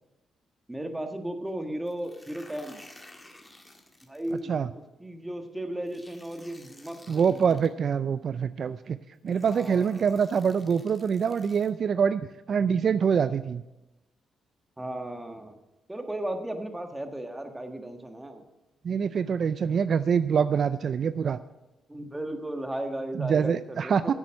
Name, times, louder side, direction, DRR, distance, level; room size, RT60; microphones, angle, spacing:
voice 1, 0.7-2.8 4.0-4.5 5.0-7.6 9.4-10.1 14.8-15.6 15.9-18.4 21.9-24.1, right 1 dB, 10° right, 5 dB, 1.5 m, -35 dB
sound 1, 1.9-4.4 5.9-7.7 8.7-8.8 9.3-11.7, left 1 dB, 10° left, 1.8 m, -53 dB
voice 2, 7.1-9.0 9.2-12.2 12.5-13.6 18.8-21.4 23.2-24.1, right 6 dB, 55° right, 13 dB, 0.4 m, -25 dB
11.0 x 8.2 x 6.3 m, 0.99 s
cardioid pair, 80°, 0 cm